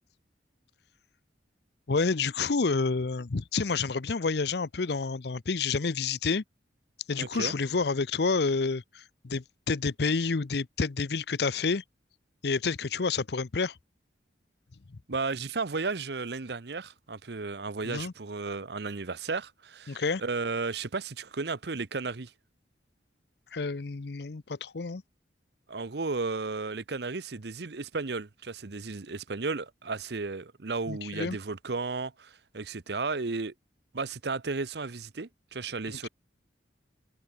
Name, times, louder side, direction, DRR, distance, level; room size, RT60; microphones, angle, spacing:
voice 1, 1.9-6.4 7.1-11.8 12.4-13.7 17.8-18.1 19.9-20.2 23.5-25.0 30.9-31.4 36.0-36.1, left 4 dB, 65° left, 0.7 m, -29 dB
voice 2, 7.2-7.5 15.1-22.3 25.7-33.5 33.9-36.1, right 4 dB, 65° right, 0.9 m, -34 dB
head